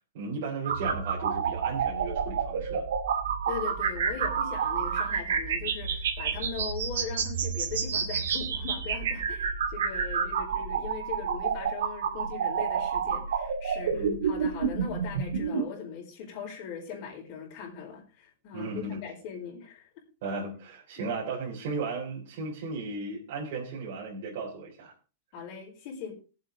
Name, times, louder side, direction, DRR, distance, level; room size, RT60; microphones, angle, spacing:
voice 1, 0.1-2.9 13.9-14.2 18.5-19.0 20.2-24.9, right 3 dB, 55° right, -4 dB, 3.5 m, -35 dB
sound 1, 0.6-15.6, right 6 dB, 85° right, 2.3 m, -29 dB
voice 2, 3.5-19.9 21.0-21.2 25.3-26.1, left 7 dB, 40° left, 1 dB, 4.5 m, -40 dB
18.5 x 7.7 x 3.8 m, 0.35 s
supercardioid pair, 155°, 0 cm